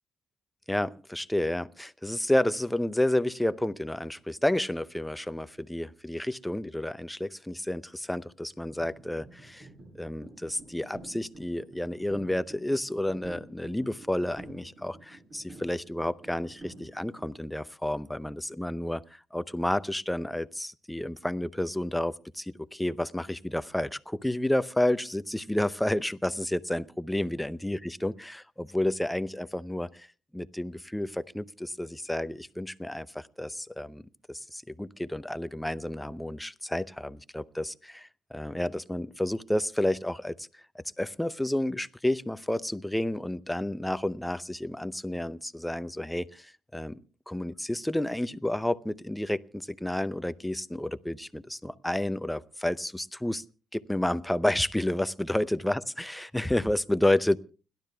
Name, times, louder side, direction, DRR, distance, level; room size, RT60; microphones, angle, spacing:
voice 1, 0.7-9.7 9.9-30.1 30.3-34.0 34.3-47.0 47.3-53.4 53.7-57.4, left 1 dB, 5° left, 15 dB, 0.6 m, -30 dB
sound 1, 8.7-17.3, right 2 dB, 50° right, 8.0 m, -49 dB
29.5 x 12.0 x 2.3 m, 0.35 s
cardioid pair, 90°, 0 cm